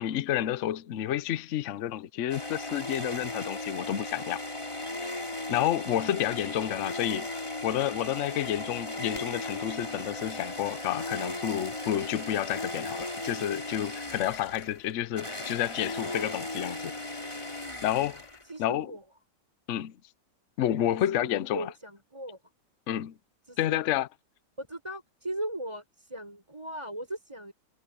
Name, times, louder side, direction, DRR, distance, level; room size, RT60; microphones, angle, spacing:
voice 1, 0.0-4.4 5.5-7.3 7.6-17.0 17.8-18.2 18.6-18.9 19.7-19.9 20.6-21.7 22.9-23.1 23.6-24.1, left 12 dB, 60° left, 0.9 m, -30 dB
sound 1, 2.3-18.6, left 2 dB, 15° left, 3.4 m, -37 dB
voice 2, 18.4-19.0 20.9-22.5 23.5-23.8 24.6-27.5, right 1 dB, 15° right, 5.7 m, -38 dB
omnidirectional pair, 1.8 m